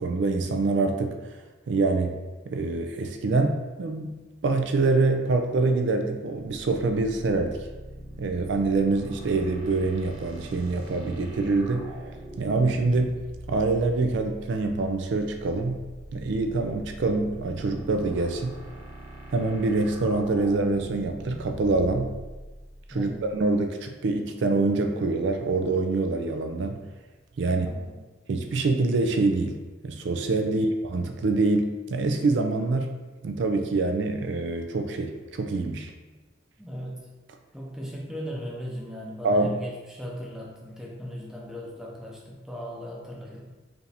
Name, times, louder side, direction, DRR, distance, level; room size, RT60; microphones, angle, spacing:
voice 1, 0.0-1.4 1.7-2.2 2.5-7.7 8.2-11.9 12.4-13.2 13.5-15.8 16.1-18.6 19.3-22.1 22.9-26.8 27.4-27.7 28.3-32.9 33.2-35.9 39.2-39.6, right 3 dB, 60° right, 5 dB, 0.4 m, -25 dB
sound 1, 7.4-23.5, right 1 dB, 30° right, 1.0 m, -43 dB
voice 2, 22.9-23.3 27.5-28.0 30.5-30.7 36.6-37.0 37.5-43.5, equal, 5° right, -3 dB, 0.6 m, -38 dB
4.9 x 2.5 x 3.3 m, 1.2 s
head